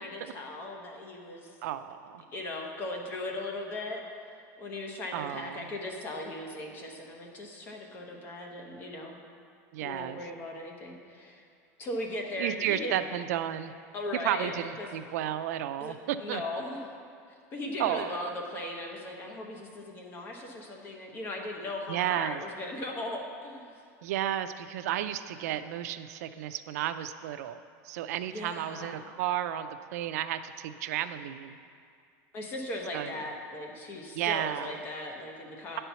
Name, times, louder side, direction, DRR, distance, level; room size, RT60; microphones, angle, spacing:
voice 1, 0.0-1.5 2.3-4.0 4.6-9.2 9.8-11.4 11.8-13.0 13.9-15.0 15.8-16.9 17.5-23.7 28.3-29.0 32.3-35.8, left 1 dB, 25° left, 1 dB, 1.0 m, -38 dB
voice 2, 1.6-2.2 5.1-5.6 9.7-10.2 12.4-13.7 14.2-16.4 17.8-18.1 21.9-22.4 24.0-27.6 27.8-31.6 32.9-33.1 34.1-34.7, right 11 dB, 80° right, 11 dB, 0.4 m, -32 dB
9.8 x 4.4 x 6.9 m, 2.3 s
supercardioid pair, 170°, 8 cm